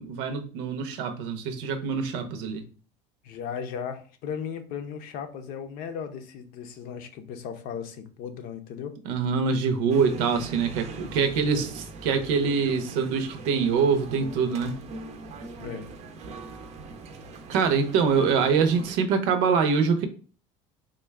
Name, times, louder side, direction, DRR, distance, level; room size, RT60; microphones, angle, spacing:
voice 1, 0.0-2.7 9.0-14.8 17.5-20.0, right 5 dB, 80° right, 0.7 m, -24 dB
voice 2, 3.2-8.9 11.0-11.1 11.5-11.7 15.6-15.9, left 7 dB, 60° left, 0.6 m, -36 dB
sound 1, 9.9-19.0, right 3 dB, 40° right, 0.6 m, -41 dB
3.7 x 2.2 x 3.3 m
cardioid pair, 125°, 16 cm